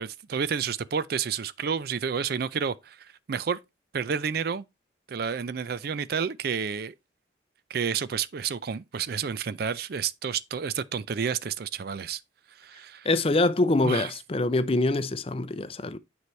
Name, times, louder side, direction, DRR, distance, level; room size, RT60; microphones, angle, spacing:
voice 1, 0.0-3.6 3.9-4.6 5.1-6.9 7.7-12.2 12.6-13.1 13.8-14.1, right 6 dB, 55° right, 0.4 m, -30 dB
voice 2, 13.0-16.0, left 2 dB, 30° left, 0.5 m, -24 dB
9.4 x 4.7 x 3.2 m
head